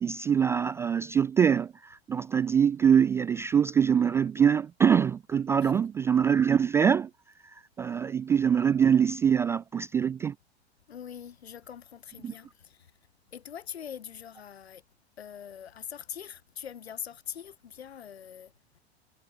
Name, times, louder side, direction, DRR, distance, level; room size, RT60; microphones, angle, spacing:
voice 1, 0.0-7.1 7.8-10.3 12.2-12.3, right 7 dB, 10° right, 0.3 m, -24 dB
voice 2, 5.6-5.9 10.9-12.9 13.3-14.8 15.2-18.5, left 8 dB, 70° left, 4.6 m, -43 dB
figure-of-eight pair, 90°, 33 cm